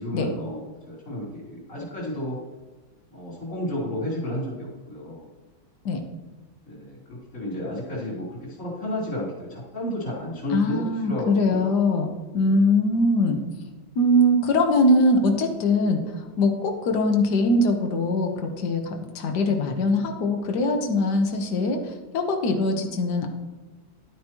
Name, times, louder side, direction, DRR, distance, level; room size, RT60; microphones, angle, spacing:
voice 1, 0.0-2.4 3.1-5.3 6.6-11.8 12.5-12.7, left 1 dB, 40° left, -6 dB, 4.0 m, -32 dB
voice 2, 10.5-12.1 12.3-13.4 14.0-16.0 16.4-23.3, left 1 dB, 60° left, 4 dB, 1.7 m, -22 dB
12.0 x 9.2 x 3.0 m, 1.2 s
omnidirectional pair, 2.2 m